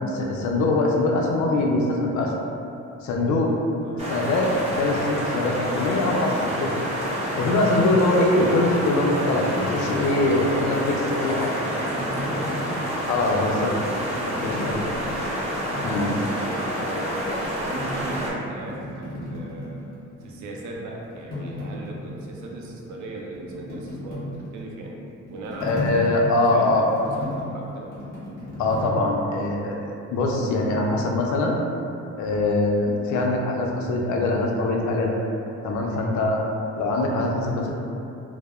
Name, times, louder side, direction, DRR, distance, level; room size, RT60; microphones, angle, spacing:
voice 1, 0.0-2.3 3.0-3.5 4.1-6.7 7.4-11.5 13.1-13.7 14.4-14.8 15.8-16.1 25.6-26.9 28.6-29.8 30.1-31.6 32.2-35.1 35.6-36.4 36.8-37.7, left 2 dB, 70° left, 0 dB, 0.5 m, -23 dB
sound 1, 4.0-18.3, equal, 20° right, 0.6 m, -28 dB
voice 2, 10.2-13.0 13.5-13.8 14.8-15.1 16.4-19.8 20.2-26.0 26.4-28.0, right 2 dB, 70° right, -1 dB, 0.4 m, -38 dB
sound 2, 10.4-13.4 14.0-16.8 17.2-20.4 20.7-28.9, left 1 dB, 30° left, 1.0 m, -36 dB
2.7 x 2.0 x 2.3 m, 2.7 s
cardioid pair, 90°, 30 cm